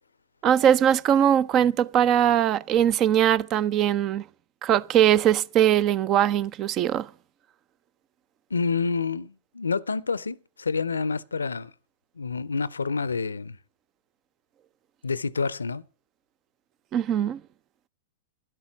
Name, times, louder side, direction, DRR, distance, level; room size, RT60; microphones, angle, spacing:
voice 1, 0.4-4.2 4.6-7.1 16.9-17.4, right 10 dB, 35° right, 0.6 m, -21 dB
voice 2, 8.5-11.7 12.2-13.6 15.0-15.8, left 4 dB, 80° left, 0.5 m, -28 dB
12.5 x 11.5 x 6.0 m
figure-of-eight pair, 100°, 0 cm